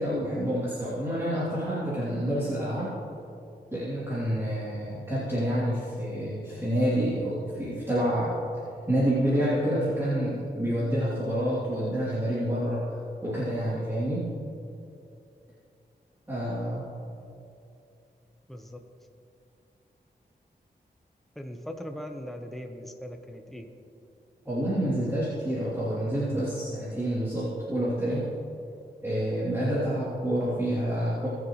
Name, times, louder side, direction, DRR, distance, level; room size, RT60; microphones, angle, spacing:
voice 1, 0.0-2.9 3.7-8.4 8.9-12.9 13.2-14.3 16.3-16.8 24.4-28.3 29.0-31.3, equal, 15° right, -11 dB, 2.9 m, -28 dB
voice 2, 18.5-18.8 21.4-23.7, equal, ahead, 4 dB, 0.8 m, -39 dB
20.0 x 7.1 x 3.1 m, 2.6 s
wide cardioid pair, 85°, 17 cm